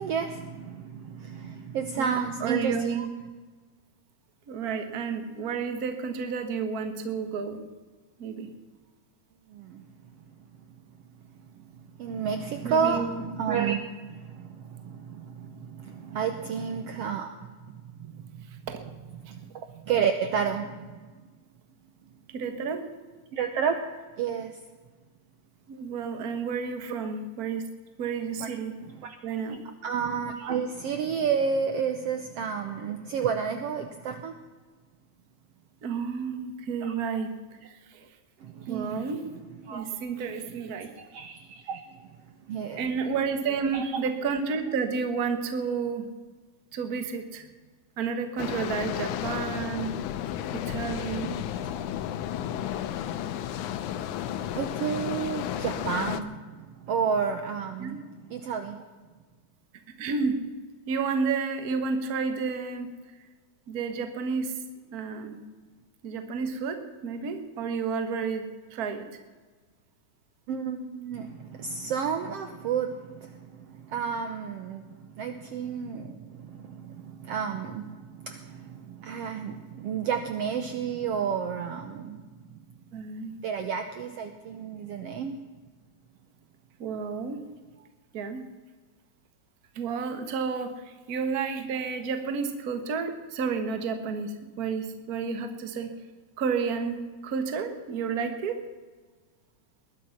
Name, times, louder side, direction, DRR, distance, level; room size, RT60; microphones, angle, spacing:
voice 1, 0.0-3.1 9.5-9.8 11.6-11.7 12.0-17.3 17.7-18.4 19.3-20.9 23.3-23.8 24.2-24.6 28.4-28.5 29.0-29.1 29.8-34.3 36.8-36.9 38.4-39.1 39.7-39.9 41.0-41.8 42.5-42.8 43.7-43.8 51.2-51.7 54.5-58.0 58.3-58.8 70.5-82.3 83.4-85.4, right 6 dB, 65° right, 7 dB, 1.7 m, -31 dB
voice 2, 2.0-3.1 4.5-7.6 8.2-8.5 12.6-13.2 18.5-18.8 19.2-19.3 22.3-22.8 25.7-27.7 28.0-28.7 29.2-29.6 35.8-37.3 37.6-38.1 38.7-39.2 39.7-40.9 42.8-46.1 46.7-47.5 48.0-49.9 50.5-51.3 57.8-58.0 60.0-60.4 60.9-62.9 63.7-64.6 64.9-65.4 66.0-69.2 81.9-82.0 82.9-83.4 86.8-87.4 88.1-88.4 89.7-95.9 96.4-98.6, right 5 dB, 40° right, 7 dB, 1.4 m, -31 dB
sound 1, 48.4-56.2, left 10 dB, 85° left, 2.2 m, -33 dB
20.0 x 11.5 x 5.9 m, 1.4 s
omnidirectional pair, 3.5 m